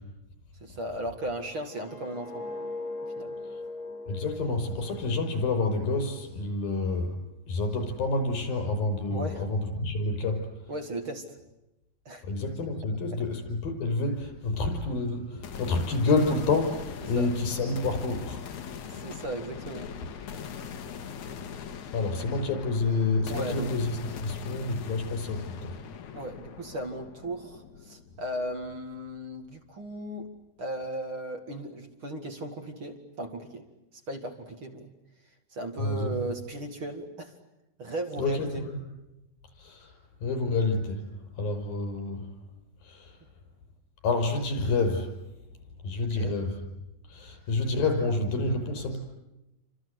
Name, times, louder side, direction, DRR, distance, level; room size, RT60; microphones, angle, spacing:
voice 1, 0.6-2.7 3.0-3.4 9.1-9.5 10.7-11.3 12.1-12.2 17.1-17.3 18.9-19.9 23.3-23.7 26.1-30.3 30.6-33.7 33.9-34.9 35.5-37.4 37.8-38.6 46.0-46.3, right 1 dB, 40° right, 4 dB, 2.5 m, -36 dB
sound 1, 1.3-6.4 6.7-7.1, left 2 dB, 30° left, 3.1 m, -40 dB
voice 2, 4.1-7.2 7.5-10.7 12.2-18.7 21.9-25.8 35.8-36.2 38.2-38.8 39.6-41.1 41.4-42.3 42.8-43.2 44.0-45.1 45.8-46.6 47.1-49.0, left 3 dB, 90° left, 6 dB, 7.2 m, -29 dB
sound 2, 15.4-29.4, left 7 dB, 60° left, 2.7 m, -41 dB
29.0 x 25.5 x 8.1 m, 0.94 s
omnidirectional pair, 4.0 m